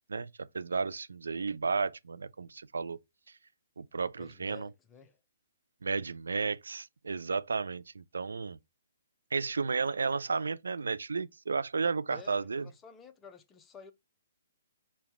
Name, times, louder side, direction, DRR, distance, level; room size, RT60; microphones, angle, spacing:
voice 1, 0.1-3.0 3.8-4.7 5.8-8.6 9.3-12.7, right 4 dB, 80° right, 0.4 m, -33 dB
voice 2, 4.2-5.2 12.1-13.9, left 5 dB, 15° left, 0.6 m, -52 dB
5.2 x 2.3 x 4.2 m
hypercardioid pair, 135°, 0 cm